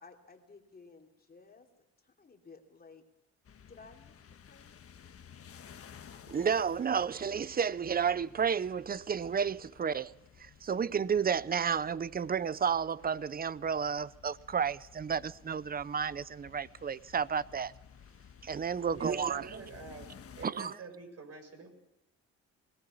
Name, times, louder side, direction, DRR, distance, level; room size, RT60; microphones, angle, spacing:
voice 1, 0.0-1.7 2.0-3.0 3.7-4.8, left 4 dB, 30° left, 3.0 m, -56 dB
sound 1, 3.4-20.5, left 7 dB, 50° left, 1.6 m, -55 dB
voice 2, 6.3-10.1 10.4-17.7 18.4-19.5 20.4-20.7, right 7 dB, 30° right, 0.7 m, -31 dB
voice 3, 18.9-21.7, right 4 dB, 55° right, 7.1 m, -47 dB
21.0 x 18.5 x 7.1 m
cardioid pair, 90°, 30 cm